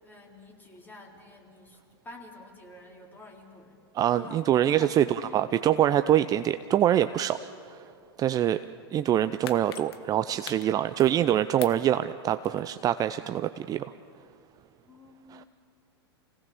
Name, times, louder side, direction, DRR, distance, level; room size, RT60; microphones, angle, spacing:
voice 1, 0.0-1.8 2.0-3.8 4.2-5.8 14.9-15.5, left 2 dB, 15° left, 0 dB, 4.1 m, -48 dB
voice 2, 3.9-7.4 7.7-7.8 8.2-8.6 8.9-13.9 15.3-15.4, right 11 dB, 25° right, 11 dB, 0.5 m, -25 dB
Breaking plastic, 9.1-11.3 11.6-12.9 13.2-13.3, left 9 dB, 70° left, 1.5 m, -43 dB
29.0 x 17.5 x 7.1 m, 2.5 s
hypercardioid pair, 110°, 14 cm